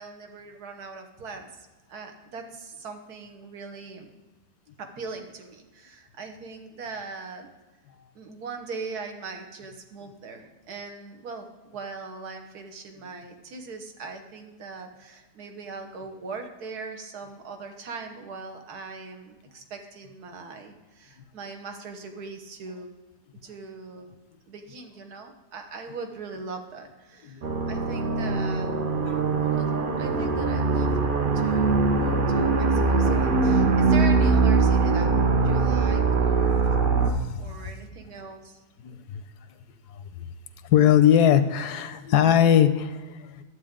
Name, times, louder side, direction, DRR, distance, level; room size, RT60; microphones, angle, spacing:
voice 1, 0.0-1.5 1.9-4.1 4.8-7.5 8.1-22.9 23.4-24.2 24.5-28.8 29.4-29.7 30.0-30.9 31.2-35.1 35.4-36.6 37.4-38.6, right 4 dB, 75° right, 5 dB, 1.5 m, -40 dB
sound 1, 27.4-37.1, right 4 dB, 50° right, 0.7 m, -22 dB
voice 2, 29.0-29.6 37.1-37.7 38.8-39.2 40.2-40.3 40.6-43.4, left 10 dB, 80° left, 11 dB, 1.2 m, -21 dB
11.0 x 8.1 x 3.6 m, 1.2 s
omnidirectional pair, 1.7 m